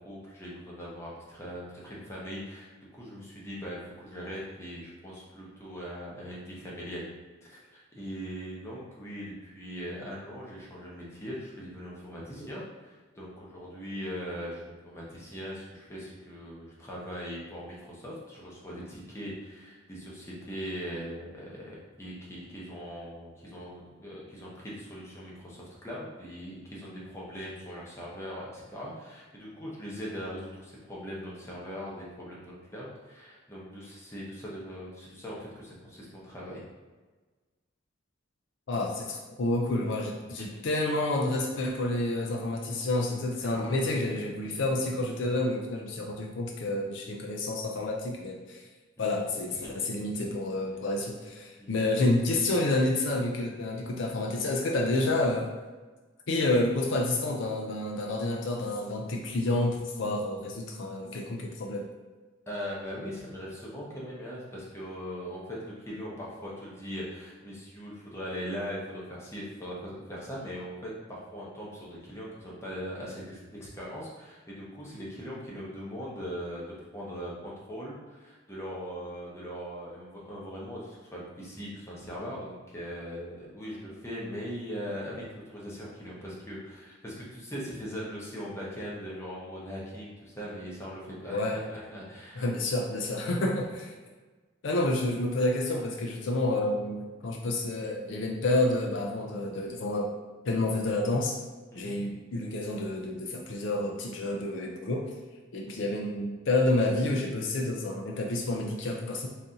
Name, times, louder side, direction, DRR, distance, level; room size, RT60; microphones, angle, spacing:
voice 1, 0.0-7.1 7.4-36.6 40.2-40.3 49.0-49.2 49.5-49.7 51.6-51.8 62.5-92.5 101.7-102.0 105.7-105.9, equal, 15° left, -5 dB, 0.8 m, -40 dB
voice 2, 38.7-48.6 49.0-55.5 56.3-61.9 91.3-91.6 92.4-93.9 94.6-100.1 100.4-101.4 101.8-105.1 105.5-109.3, left 2 dB, 65° left, 1 dB, 0.5 m, -29 dB
4.1 x 2.7 x 3.6 m, 1.3 s
head